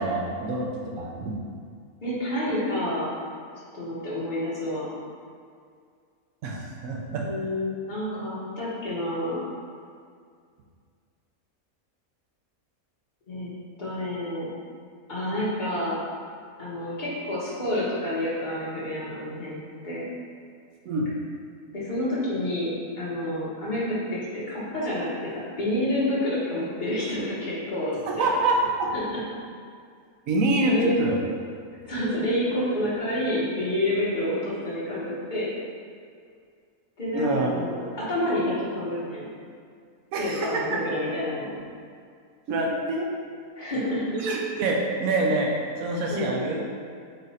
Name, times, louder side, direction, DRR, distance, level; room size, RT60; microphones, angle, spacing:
voice 1, 0.0-1.4 6.4-7.3 20.8-21.1 28.1-29.3 30.3-31.1 37.1-37.5 40.1-40.6 42.5-43.1 44.1-46.6, right 2 dB, 75° right, -1 dB, 1.0 m, -26 dB
voice 2, 2.0-3.1 3.7-4.9 7.2-9.4 13.3-13.5 13.8-14.5 15.1-16.0 16.6-20.0 21.7-28.3 28.9-29.0 30.6-31.0 31.9-35.5 37.0-39.3 40.2-41.5 43.6-44.2 46.1-46.3, left 1 dB, 35° left, -9 dB, 1.1 m, -29 dB
4.0 x 2.5 x 4.0 m, 2.2 s
omnidirectional pair, 1.5 m